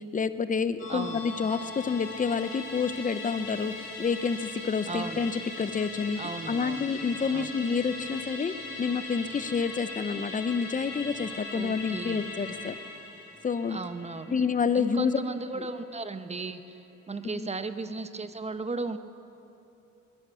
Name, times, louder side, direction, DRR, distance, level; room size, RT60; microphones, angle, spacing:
voice 1, 0.0-12.8 13.4-13.8 14.3-15.1 17.3-17.5, left 5 dB, 25° left, 13 dB, 0.7 m, -29 dB
Musical instrument, 0.8-15.5 15.8-15.9, left 3 dB, 45° left, 4.2 m, -40 dB
voice 2, 0.9-1.2 4.9-5.2 6.2-6.9 7.3-7.6 11.5-12.3 13.7-14.3 14.7-16.8 17.1-19.0, right 3 dB, 20° right, 10 dB, 0.9 m, -35 dB
21.0 x 10.0 x 6.9 m, 2.9 s
cardioid pair, 90°, 30 cm